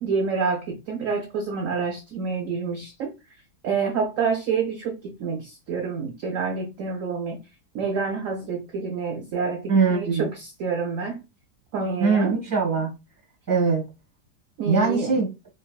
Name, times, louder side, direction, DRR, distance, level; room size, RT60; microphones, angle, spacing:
voice 1, 0.0-3.1 3.6-7.4 7.7-11.2 11.7-12.3 14.6-15.1, right 5 dB, 65° right, 0.9 m, -28 dB
voice 2, 9.7-10.3 12.0-12.9 13.5-13.8 14.7-15.3, right 5 dB, 15° right, 1.2 m, -21 dB
3.5 x 3.3 x 2.3 m
omnidirectional pair, 1.7 m